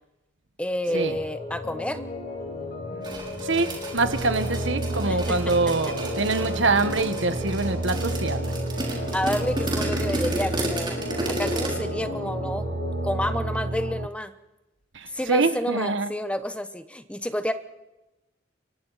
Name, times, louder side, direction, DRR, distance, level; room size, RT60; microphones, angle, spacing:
voice 1, 0.6-2.0 5.1-5.4 8.9-11.0 11.3-12.7 13.0-14.3 15.1-17.5, left 1 dB, 5° left, 1.0 m, -29 dB
sound 1, 0.9-13.4, left 2 dB, 50° left, 6.5 m, -35 dB
sound 2, 3.0-11.8, right 1 dB, 25° right, 5.7 m, -32 dB
voice 2, 3.4-8.5 14.9-16.1, right 3 dB, 75° right, 1.5 m, -25 dB
sound 3, 4.0-14.1, right 2 dB, 55° right, 0.8 m, -31 dB
28.5 x 24.0 x 4.2 m
head